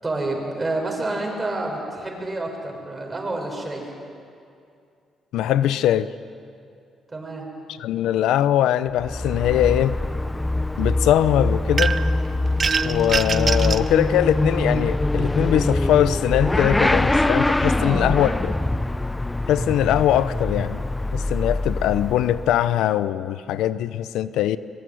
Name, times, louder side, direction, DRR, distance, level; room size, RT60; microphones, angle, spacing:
voice 1, 0.0-3.8 7.1-7.5 17.8-18.2, right 2 dB, 20° right, 0 dB, 7.1 m, -28 dB
voice 2, 5.3-6.1 7.8-10.0 10.8-11.9 12.8-18.5 19.5-20.8 21.1-24.6, left 11 dB, 85° left, 14 dB, 0.7 m, -21 dB
Motorcycle / Accelerating revving vroom, 8.9-22.7, left 2 dB, 10° left, 0.7 m, -24 dB
sound 1, 11.8-12.2 12.6-13.9, right 5 dB, 40° right, 0.8 m, -24 dB
24.5 x 22.0 x 9.4 m, 2.4 s
cardioid pair, 90°, 0 cm